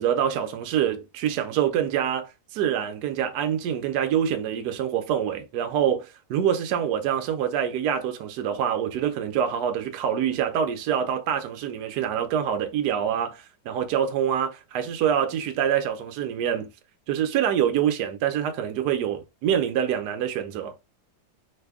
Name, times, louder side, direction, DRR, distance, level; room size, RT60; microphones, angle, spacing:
voice 1, 0.0-16.7 17.1-20.7, right 9 dB, 70° right, 1.1 m, -25 dB
3.3 x 2.2 x 3.4 m
omnidirectional pair, 2.0 m